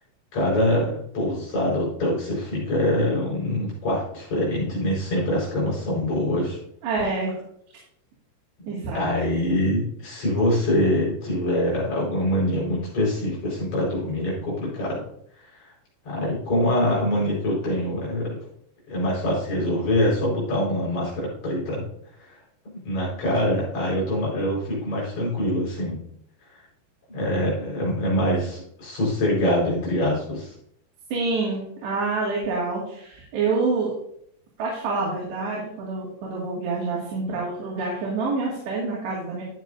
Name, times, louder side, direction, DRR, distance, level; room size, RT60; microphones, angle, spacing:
voice 1, 0.3-6.6 8.9-15.0 15.6-15.7 16.0-18.4 18.9-21.9 22.7-26.0 27.1-30.5, left 1 dB, 40° left, -5 dB, 5.8 m, -24 dB
voice 2, 6.8-7.4 8.7-9.1 31.1-33.9 34.6-39.4, right 3 dB, 75° right, -5 dB, 4.3 m, -27 dB
12.5 x 9.4 x 2.6 m, 0.71 s
omnidirectional pair, 5.1 m